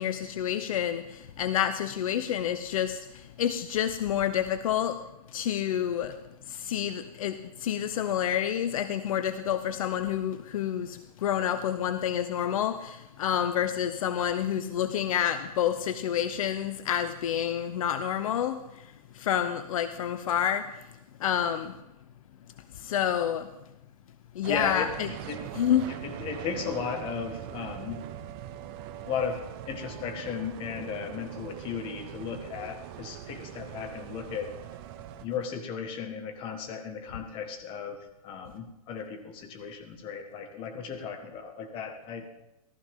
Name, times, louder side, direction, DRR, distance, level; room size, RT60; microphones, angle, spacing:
voice 1, 0.0-5.0 5.3-6.1 6.5-18.6 19.1-20.7 21.2-21.7 22.8-23.5 24.3-24.9 25.6-25.9, left 10 dB, 65° left, 11 dB, 0.8 m, -28 dB
voice 2, 24.4-25.5 25.9-28.0 29.0-34.5 35.2-42.3, left 6 dB, 30° left, 5 dB, 1.6 m, -35 dB
sound 1, 24.4-35.3, right 11 dB, 40° right, 0.9 m, -41 dB
14.5 x 14.0 x 3.7 m, 0.90 s
hypercardioid pair, 145°, 19 cm